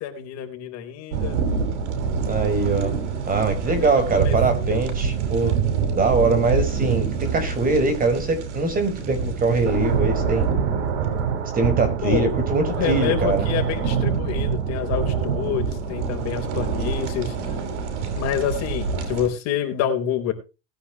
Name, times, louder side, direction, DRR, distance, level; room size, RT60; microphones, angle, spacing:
voice 1, 0.0-1.4 3.6-3.9 4.2-4.8 12.0-12.3 12.7-17.3 18.2-20.3, left 9 dB, 50° left, 4 dB, 3.9 m, -27 dB
sound 1, 1.1-19.3, right 6 dB, 85° right, 5.8 m, -25 dB
voice 2, 2.3-2.9 3.3-5.5 5.9-10.5 11.5-13.5, right 3 dB, 25° right, 8 dB, 4.7 m, -22 dB
19.5 x 9.9 x 3.0 m, 0.30 s
supercardioid pair, 130°, 34 cm